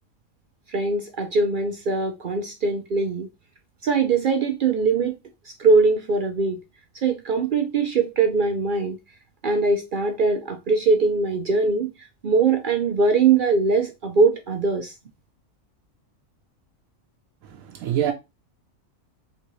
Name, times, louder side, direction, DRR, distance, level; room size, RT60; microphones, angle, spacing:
voice 1, 0.7-3.3 3.8-5.2 5.6-6.6 7.0-9.0 9.4-11.9 12.2-14.9, right 4 dB, 60° right, 0.5 m, -21 dB
voice 2, 17.4-18.1, right 10 dB, 80° right, 1.1 m, -26 dB
4.1 x 3.6 x 3.0 m
omnidirectional pair, 1.4 m